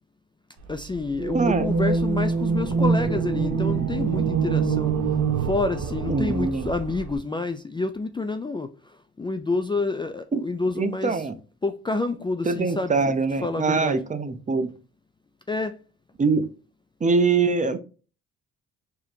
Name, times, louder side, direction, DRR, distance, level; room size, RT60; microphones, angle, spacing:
voice 1, 0.7-5.0 5.4-8.7 9.2-11.2 11.6-13.1 13.4-14.0 15.5-15.8, left 3 dB, 15° left, 0.4 m, -28 dB
sound 1, 1.2-7.2, right 5 dB, 65° right, 1.1 m, -25 dB
voice 2, 1.3-1.7 6.1-6.7 10.3-10.4 10.8-11.3 12.4-14.7 16.2-16.5 17.0-17.8, right 4 dB, 25° right, 0.6 m, -23 dB
4.9 x 2.8 x 2.7 m
cardioid pair, 90°, 30 cm